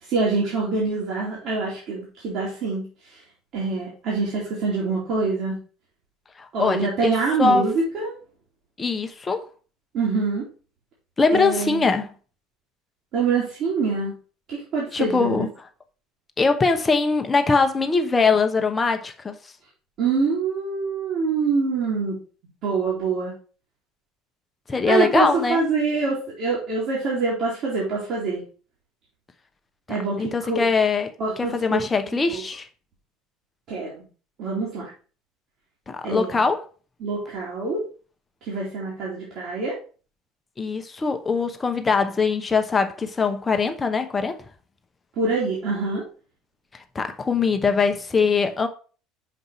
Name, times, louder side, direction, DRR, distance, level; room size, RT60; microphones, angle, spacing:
voice 1, 0.1-3.2 3.5-5.6 6.5-8.1 9.9-10.5 11.3-11.9 13.1-14.2 14.5-15.5 20.0-22.2 22.6-23.3 24.9-28.4 29.9-30.6 31.2-31.8 32.3-32.4 33.7-34.0 34.4-34.9 36.0-36.4 37.0-37.8 38.4-39.7 45.2-46.0, right 4 dB, 50° right, 2.7 m, -25 dB
voice 2, 6.4-7.1 7.4-7.7 8.8-9.5 11.2-12.1 14.9-15.5 16.4-19.4 24.7-25.6 30.2-31.1 31.4-32.7 35.9-36.6 40.6-44.4 46.7-48.7, left 4 dB, 20° left, 1.0 m, -22 dB
6.0 x 5.2 x 4.3 m
figure-of-eight pair, 65°, 0 cm